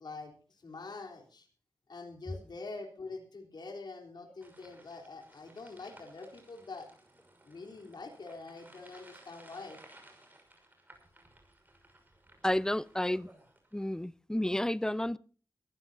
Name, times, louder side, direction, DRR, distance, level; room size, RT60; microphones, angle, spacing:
voice 1, 0.0-1.5 1.9-6.9 7.4-9.8, left 3 dB, 65° left, 3.6 m, -45 dB
sound 1, 4.4-14.0, right 1 dB, 25° right, 5.9 m, -58 dB
voice 2, 12.4-13.3 13.7-15.2, left 1 dB, 10° left, 0.6 m, -31 dB
22.5 x 15.0 x 2.7 m
wide cardioid pair, 75°, 8 cm